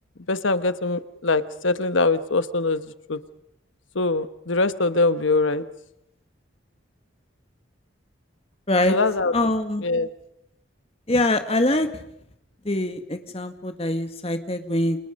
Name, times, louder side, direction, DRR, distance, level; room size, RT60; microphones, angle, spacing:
voice 1, 0.3-2.8 3.1-3.2 3.9-5.6 8.9-9.3 9.8-10.1, left 3 dB, 80° left, 12 dB, 1.2 m, -22 dB
voice 2, 8.7-9.0 9.3-9.8 11.1-12.0 12.7-15.1, left 1 dB, 30° left, 7 dB, 1.8 m, -23 dB
29.0 x 27.5 x 5.4 m, 0.78 s
head